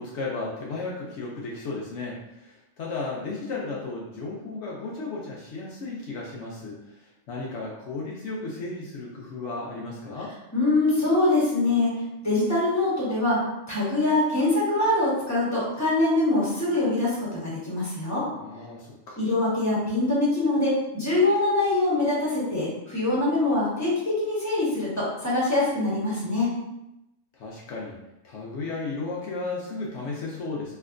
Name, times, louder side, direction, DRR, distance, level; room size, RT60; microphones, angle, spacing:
voice 1, 0.0-10.3 18.3-19.2 27.3-28.0 28.2-30.7, left 3 dB, 70° left, -4 dB, 0.9 m, -34 dB
voice 2, 10.5-11.9 12.2-13.4 13.7-18.3 19.2-26.5, left 2 dB, 15° left, -8 dB, 1.1 m, -24 dB
3.2 x 2.8 x 2.5 m, 0.90 s
omnidirectional pair, 1.3 m